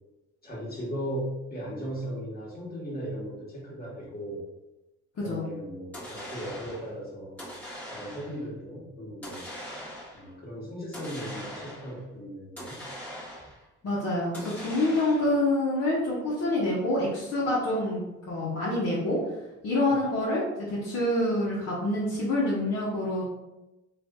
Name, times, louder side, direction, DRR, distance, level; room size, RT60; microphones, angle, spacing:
voice 1, 0.4-4.4 5.1-7.4 7.9-9.5 10.1-12.8, equal, 30° left, -5 dB, 1.3 m, -37 dB
sound 1, 5.9-6.9 7.4-8.4 9.2-10.3 10.9-12.0 12.6-13.7 14.3-15.4, equal, 5° left, 1.2 m, -41 dB
voice 2, 13.8-19.2 19.6-23.2, left 1 dB, 55° left, -6 dB, 0.9 m, -27 dB
2.5 x 2.5 x 3.5 m, 0.98 s
cardioid pair, 90°, 30 cm